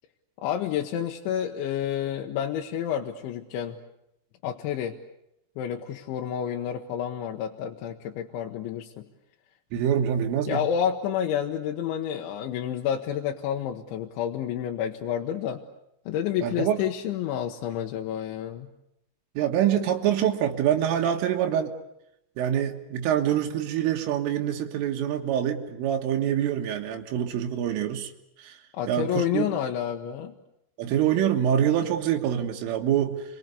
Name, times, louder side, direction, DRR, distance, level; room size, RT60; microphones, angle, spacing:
voice 1, 0.4-3.8 4.4-5.0 5.6-9.1 10.5-15.6 16.1-18.7 28.7-30.3, left 9 dB, 75° left, 2 dB, 3.4 m, -29 dB
voice 2, 9.7-10.6 16.4-16.8 19.4-21.7 22.4-28.1 28.4-28.6 28.9-29.5 30.8-33.2, right 10 dB, 85° right, 3 dB, 4.1 m, -25 dB
28.5 x 23.0 x 8.3 m, 0.83 s
omnidirectional pair, 5.7 m